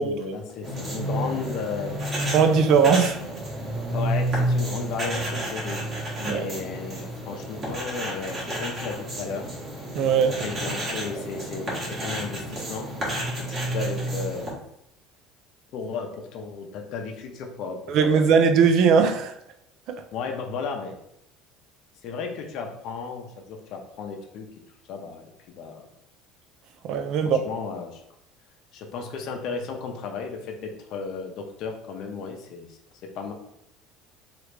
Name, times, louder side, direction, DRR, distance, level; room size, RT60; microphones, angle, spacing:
voice 1, 0.0-2.0 3.9-9.5 10.4-12.9 13.3-14.6 15.7-18.3 20.1-20.9 22.0-24.5 24.9-25.3 25.6-25.9 27.2-28.0 28.7-32.8 33.1-33.3, left 5 dB, 55° left, 3 dB, 0.6 m, -34 dB
sound 1, 0.6-14.5, right 1 dB, 30° right, 1.1 m, -30 dB
voice 2, 2.3-3.2 6.3-6.4 9.9-10.3 17.9-19.3 26.9-27.4, right 6 dB, 60° right, 7 dB, 0.4 m, -19 dB
3.1 x 2.5 x 3.2 m, 0.80 s
cardioid pair, 130°, 0 cm